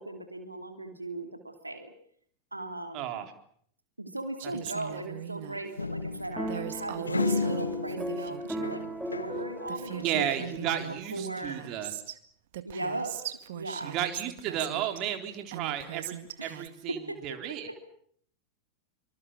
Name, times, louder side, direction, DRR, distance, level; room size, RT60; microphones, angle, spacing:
voice 1, 0.0-1.9 2.5-3.2 4.0-10.8 11.1-11.6 12.6-13.9 14.6-14.7 16.4-16.6 16.9-17.8, right 2 dB, 85° right, 6 dB, 2.8 m, -38 dB
voice 2, 2.9-3.3 10.0-11.9 13.8-17.7, right 10 dB, 40° right, 5 dB, 3.9 m, -33 dB
Female speech woman speaking, 4.4-5.6 6.5-8.8 9.4-9.5 9.7-12.2 12.5-15.0 15.5-16.7, right 12 dB, 55° right, 2.0 m, -40 dB
sound 1, 5.8-9.5 9.8-11.0, left 3 dB, 80° left, 1.1 m, -34 dB
sound 2, 6.4-10.8, right 1 dB, ahead, 2.3 m, -37 dB
26.0 x 25.0 x 7.3 m, 0.65 s
figure-of-eight pair, 90°, 0 cm